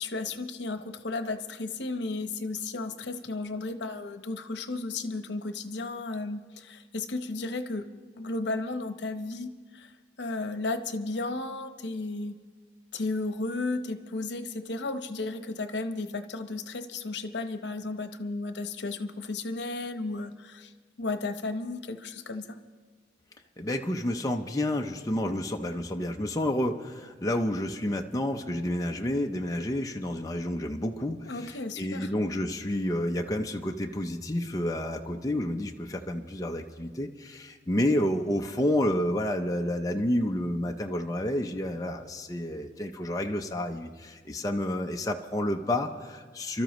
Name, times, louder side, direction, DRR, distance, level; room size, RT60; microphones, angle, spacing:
voice 1, 0.0-7.9 8.2-9.9 10.2-12.3 12.9-22.6 31.3-32.1, left 3 dB, 75° left, 8 dB, 0.9 m, -34 dB
voice 2, 23.6-46.6, left 1 dB, 20° left, 2 dB, 0.5 m, -30 dB
28.5 x 13.0 x 3.1 m, 1.5 s
head